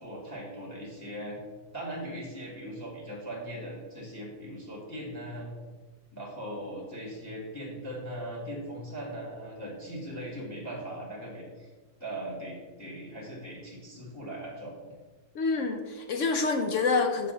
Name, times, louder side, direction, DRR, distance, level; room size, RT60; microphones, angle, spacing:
voice 1, 0.0-1.4 1.7-5.5 6.1-11.7 12.0-14.7, right 1 dB, 10° left, -3 dB, 1.6 m, -39 dB
voice 2, 15.3-17.3, left 4 dB, 65° left, 5 dB, 0.8 m, -27 dB
6.9 x 6.7 x 3.8 m, 1.4 s
omnidirectional pair, 1.7 m